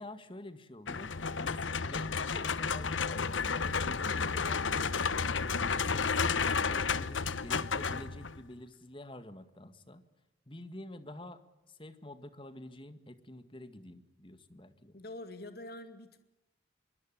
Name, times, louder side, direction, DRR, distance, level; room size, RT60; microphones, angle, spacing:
voice 1, 0.0-1.1 1.4-4.9 5.5-10.0 10.5-11.4 11.7-15.0, left 1 dB, 25° left, 11 dB, 1.9 m, -48 dB
sound 1, 0.9-8.5, left 5 dB, 90° left, 1.0 m, -32 dB
voice 2, 1.1-1.8 14.9-16.2, left 1 dB, 55° left, 9 dB, 2.2 m, -47 dB
25.5 x 23.0 x 8.9 m, 0.95 s
head